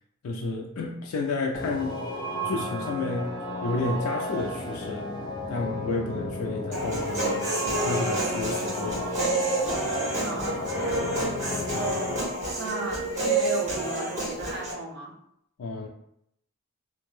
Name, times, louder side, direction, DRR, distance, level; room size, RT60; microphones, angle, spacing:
voice 1, 0.2-2.1 2.4-5.1 5.5-9.1 11.7-12.0 15.6-15.9, left 3 dB, 85° left, 1 dB, 0.4 m, -31 dB
sound 1, 1.5-12.2, left 1 dB, 20° left, 0.4 m, -33 dB
Human voice, 6.7-14.7, right 2 dB, 35° right, 1.4 m, -29 dB
voice 2, 10.2-11.3 12.6-15.1, right 2 dB, 55° right, -1 dB, 0.6 m, -35 dB
2.5 x 2.2 x 3.1 m, 0.74 s
head